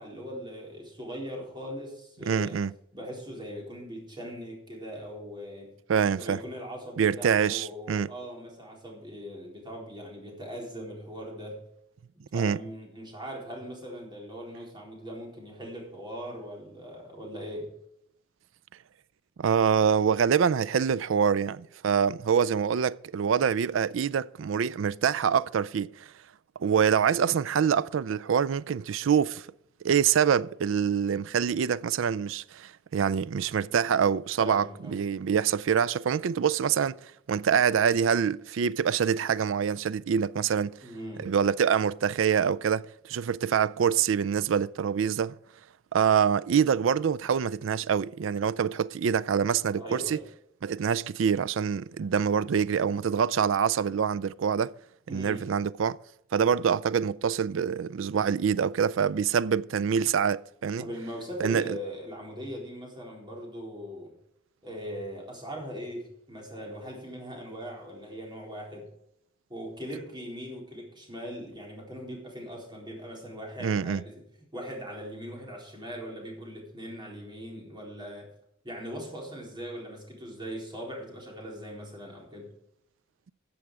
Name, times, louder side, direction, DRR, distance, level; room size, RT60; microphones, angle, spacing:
voice 1, 0.0-2.6 2.9-5.7 6.1-11.6 12.3-17.7 34.4-35.0 40.8-41.3 49.7-50.3 55.1-55.4 60.8-64.1 64.6-68.9 69.5-74.2 74.5-78.3 78.6-82.5, equal, 25° right, 4.1 m, -40 dB
voice 2, 2.3-2.7 5.9-6.4 7.0-8.1 12.3-12.6 19.4-26.1 26.6-29.5 29.8-37.0 37.3-40.8 41.2-45.4 45.9-50.2 50.6-54.7 55.1-56.0 56.3-60.8 61.4-61.8 73.6-74.0, right 7 dB, 70° right, 0.4 m, -25 dB
14.0 x 7.7 x 4.8 m
head